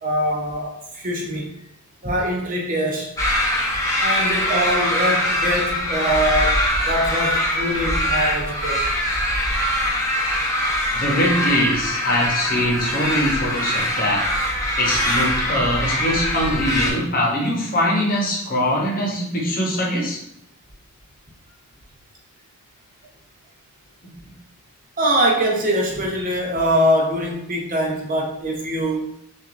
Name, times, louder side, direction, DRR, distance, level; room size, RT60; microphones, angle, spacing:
voice 1, 0.0-1.5 2.0-3.1 4.0-8.8 25.0-29.1, equal, 40° right, -1 dB, 0.8 m, -23 dB
sound 1, 3.2-16.9, left 1 dB, 15° left, 0.7 m, -22 dB
voice 2, 10.9-14.3 14.8-20.2, equal, 40° left, -1 dB, 0.9 m, -22 dB
6.0 x 2.6 x 2.5 m, 0.74 s
head